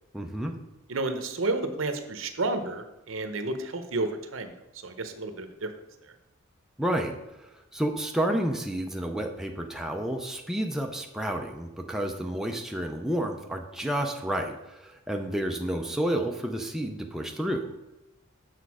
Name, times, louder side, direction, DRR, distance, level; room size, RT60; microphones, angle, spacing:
voice 1, 0.1-0.5 6.8-7.2 7.4-17.6, right 1 dB, ahead, 2 dB, 0.5 m, -30 dB
voice 2, 0.9-4.5 4.8-5.7, right 2 dB, 70° right, 8 dB, 0.8 m, -31 dB
6.5 x 6.2 x 4.8 m, 0.97 s
head